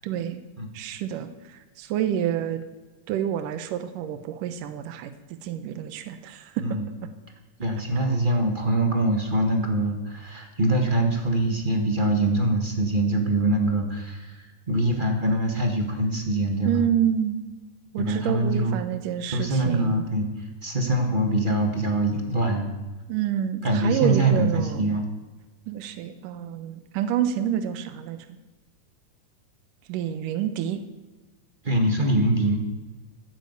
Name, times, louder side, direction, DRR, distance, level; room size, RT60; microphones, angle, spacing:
voice 1, 0.0-0.4 0.7-2.6 3.1-5.1 5.4-6.6 16.7-17.4 17.9-20.1 23.1-24.9 25.7-28.3 29.9-30.8, right 10 dB, 80° right, 10 dB, 2.5 m, -28 dB
voice 2, 7.6-16.8 18.0-18.7 19.3-20.3 20.6-22.7 23.6-25.0 31.6-32.6, right 1 dB, 35° right, 3 dB, 0.7 m, -24 dB
15.0 x 9.7 x 8.1 m, 1.3 s
omnidirectional pair, 3.7 m